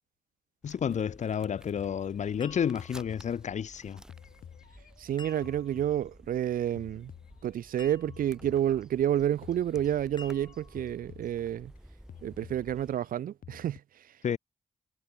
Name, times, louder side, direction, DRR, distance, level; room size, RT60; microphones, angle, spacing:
voice 1, 0.6-4.0 14.2-14.4, left 8 dB, 55° left, 1.0 m, -31 dB
sound 1, 0.6-13.0, right 1 dB, 5° right, 6.5 m, -54 dB
sound 2, 1.4-3.8 4.1-6.4 6.8-7.8 8.1-9.1 9.4-11.8 12.1-13.8, left 10 dB, 75° left, 1.7 m, -52 dB
sound 3, 2.4-3.3 5.2-5.9 7.8-8.5 10.2-11.0, left 4 dB, 30° left, 2.8 m, -51 dB
voice 2, 5.0-7.1 7.4-11.7 12.2-14.1, right 11 dB, 75° right, 0.8 m, -30 dB
cardioid pair, 100°, 14 cm